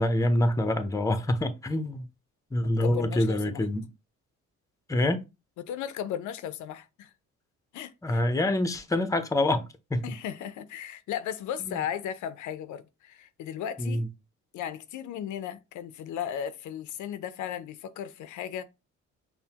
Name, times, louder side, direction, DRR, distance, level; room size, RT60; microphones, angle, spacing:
voice 1, 0.0-2.1 2.5-3.8 4.9-5.2 8.0-9.6 9.9-10.0 11.6-11.8 13.8-14.1, left 1 dB, 10° left, 0.6 m, -26 dB
voice 2, 2.6-3.6 5.6-7.1 7.7-8.2 10.0-14.0 14.5-18.6, left 9 dB, 75° left, 0.5 m, -36 dB
5.5 x 2.1 x 2.8 m
cardioid pair, 90°, 30 cm